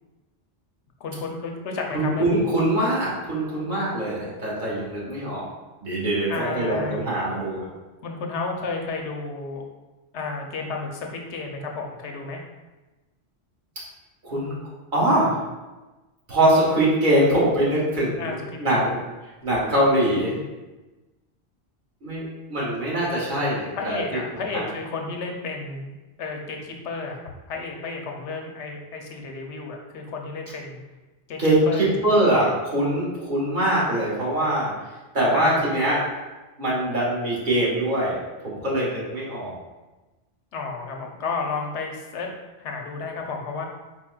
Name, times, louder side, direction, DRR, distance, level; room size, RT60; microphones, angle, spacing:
voice 1, 1.0-2.5 6.3-7.0 8.0-9.6 10.1-12.4 18.2-18.3 18.7-18.9 23.7-25.9 26.2-30.8 31.3-31.4 31.7-31.9 32.3-32.5 35.3-35.9 40.5-42.3 42.6-43.7, left 4 dB, 90° left, 1 dB, 1.0 m, -32 dB
voice 2, 1.9-5.5 5.8-7.6 14.2-14.5 14.9-15.4 16.3-19.0 19.4-20.4 22.0-24.0 24.3-24.6 31.4-34.7 35.1-36.0 36.6-38.2 38.4-39.5, right 1 dB, 45° right, -7 dB, 1.5 m, -23 dB
4.4 x 4.4 x 2.3 m, 1.1 s
omnidirectional pair, 1.1 m